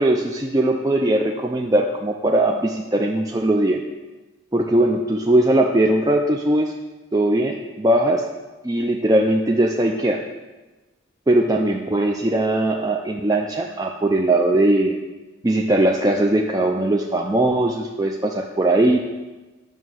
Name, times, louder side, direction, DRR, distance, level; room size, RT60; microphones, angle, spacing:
voice 1, 0.0-3.8 4.5-6.7 7.1-8.3 8.6-10.2 11.3-15.0 15.4-19.0, right 1 dB, 20° right, 2 dB, 0.4 m, -20 dB
9.1 x 6.7 x 6.3 m, 1.2 s
head